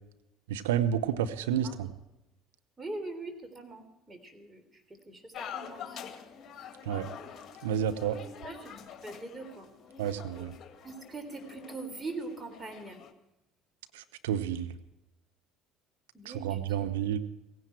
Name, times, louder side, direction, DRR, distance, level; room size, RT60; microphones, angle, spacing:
voice 1, 0.5-1.9 6.9-7.1 7.6-8.2 10.0-10.5 13.9-14.7 16.2-17.2, right 9 dB, 80° right, 9 dB, 1.0 m, -30 dB
voice 2, 2.8-6.1 8.4-9.7 10.8-13.0 16.1-16.9, right 3 dB, 20° right, 6 dB, 3.7 m, -42 dB
sound 1, 5.3-13.1, left 7 dB, 45° left, 1.9 m, -46 dB
17.0 x 16.0 x 4.6 m, 0.93 s
hypercardioid pair, 65°, 0 cm